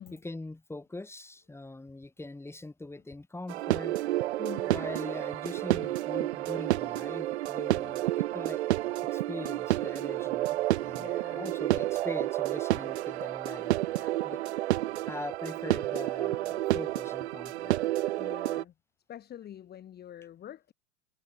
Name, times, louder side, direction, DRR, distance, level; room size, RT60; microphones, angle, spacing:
voice 1, 0.1-4.0 4.7-8.6 9.0-11.1 11.3-14.4 15.1-17.8, left 2 dB, 5° left, 5.8 m, -42 dB
sound 1, 3.5-18.6, right 15 dB, 65° right, 0.7 m, -30 dB
voice 2, 4.4-4.7 11.0-11.6 18.2-18.7 19.1-20.7, left 10 dB, 25° left, 1.8 m, -45 dB
figure-of-eight pair, 95°, 36 cm